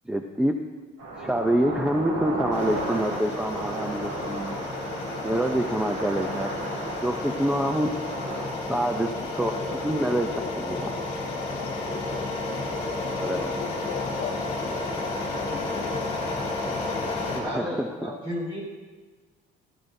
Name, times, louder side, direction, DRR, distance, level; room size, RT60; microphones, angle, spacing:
voice 1, 0.1-0.6 1.2-4.6 5.2-6.5 7.0-7.9 8.7-10.3 10.6-10.9 13.1-13.5 17.2-18.1, right 1 dB, 5° right, 4 dB, 0.5 m, -27 dB
sound 1, 1.0-8.5, right 2 dB, 85° right, 4.6 m, -34 dB
sound 2, 2.5-17.4, left 2 dB, 35° left, 2.9 m, -32 dB
voice 2, 9.0-16.1, left 9 dB, 85° left, 6 dB, 1.1 m, -41 dB
voice 3, 17.4-18.6, left 1 dB, 30° right, -3 dB, 4.2 m, -32 dB
16.0 x 13.5 x 2.7 m, 1.3 s
cardioid pair, 160°, 21 cm